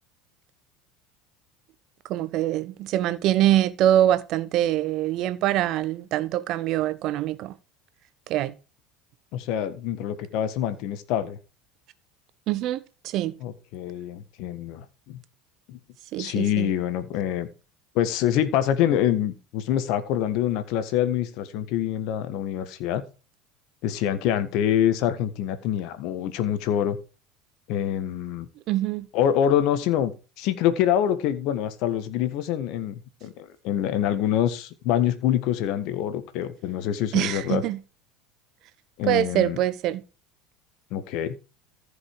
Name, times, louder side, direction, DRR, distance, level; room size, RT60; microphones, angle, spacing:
voice 1, 2.1-7.5 8.3-8.5 12.5-13.3 16.1-16.7 28.7-29.1 37.1-37.8 39.1-40.0, right 13 dB, 55° right, 1.0 m, -24 dB
voice 2, 9.3-11.4 13.4-15.2 15.7-15.8 16.2-17.5 17.9-23.0 23.8-27.0 27.7-28.5 29.1-30.1 30.4-37.6 39.0-39.6 40.9-41.4, left 10 dB, 60° left, 1.5 m, -25 dB
14.5 x 5.4 x 4.8 m
hypercardioid pair, 75°, 0 cm